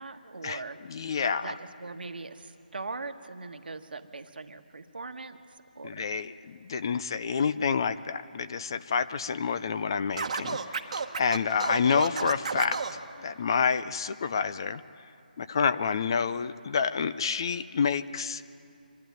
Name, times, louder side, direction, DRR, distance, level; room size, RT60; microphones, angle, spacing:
voice 1, 0.0-0.8 1.1-6.1 11.7-12.0, right 3 dB, 75° right, 7 dB, 1.4 m, -41 dB
voice 2, 0.9-1.5 5.8-12.8 13.2-14.8 15.4-18.4, left 6 dB, 25° left, 13 dB, 0.4 m, -28 dB
Scratching (performance technique), 10.2-13.0, right 5 dB, 40° right, 1.2 m, -32 dB
25.0 x 12.0 x 9.3 m, 2.7 s
hypercardioid pair, 170°, 5 cm